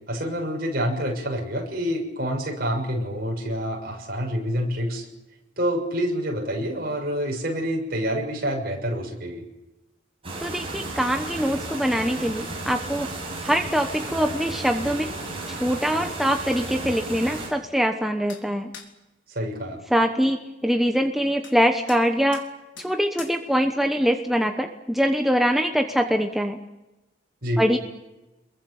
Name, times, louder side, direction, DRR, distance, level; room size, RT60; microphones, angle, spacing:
voice 1, 0.1-5.1 5.6-9.4 19.3-19.8 27.4-27.6, equal, 50° right, 1 dB, 6.6 m, -27 dB
sound 1, 10.2-17.5, right 2 dB, 30° right, 8.0 m, -34 dB
voice 2, 10.4-13.1 13.4-15.1 15.5-18.7 19.9-22.4 22.8-26.6 27.6-27.8, equal, ahead, 4 dB, 1.0 m, -23 dB
sound 2, 18.3-18.4 18.7-18.9 21.4-21.6 21.9-22.1 22.3-22.5 22.8-22.9 23.2-23.4, left 6 dB, 75° left, 3.9 m, -42 dB
28.0 x 22.5 x 7.2 m, 1.0 s
head